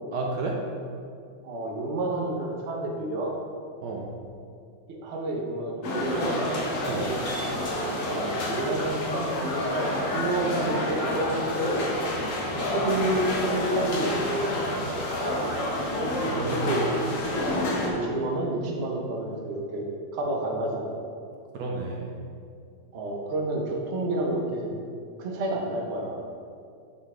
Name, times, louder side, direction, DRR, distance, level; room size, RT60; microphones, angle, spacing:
voice 1, 0.1-0.6 3.8-4.1 6.8-7.1 16.2-16.6 21.6-22.1, right 3 dB, 70° right, -1 dB, 1.2 m, -31 dB
voice 2, 1.4-3.4 4.9-6.6 8.0-11.8 12.5-14.8 16.4-16.9 17.3-19.9 20.1-21.0 22.9-24.7 25.2-26.2, right 1 dB, 45° right, -1 dB, 0.9 m, -30 dB
sound 1, 5.8-17.9, left 1 dB, 50° left, 1.1 m, -28 dB
6.6 x 5.3 x 3.7 m, 2.3 s
omnidirectional pair, 2.0 m